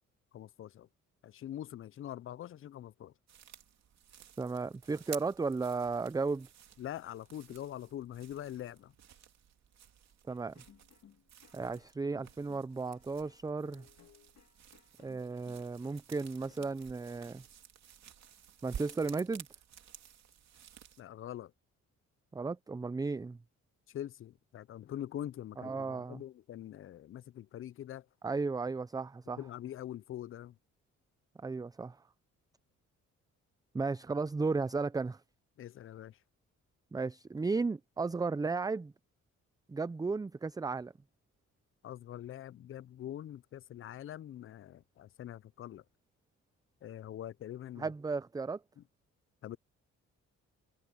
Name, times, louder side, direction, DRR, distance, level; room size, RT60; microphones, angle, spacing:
voice 1, 0.3-0.9 1.2-3.1 6.8-8.9 21.0-21.5 23.9-28.1 29.4-30.6 35.6-36.2 41.8-45.8 46.8-47.9 48.8-48.9 49.4-49.6, left 11 dB, 45° left, 0.5 m, -44 dB
sound 1, 3.3-21.0, right 9 dB, 65° right, 3.3 m, -53 dB
voice 2, 4.4-6.5 10.3-10.5 11.5-13.9 15.0-17.4 18.6-19.5 22.3-23.4 25.6-26.2 28.2-29.4 31.4-32.0 33.7-35.2 36.9-38.9 39.7-40.9 47.8-48.6, right 4 dB, 15° right, 0.5 m, -34 dB
sound 2, 10.3-16.9, left 9 dB, 60° left, 2.3 m, -62 dB
cardioid pair, 90°, 30 cm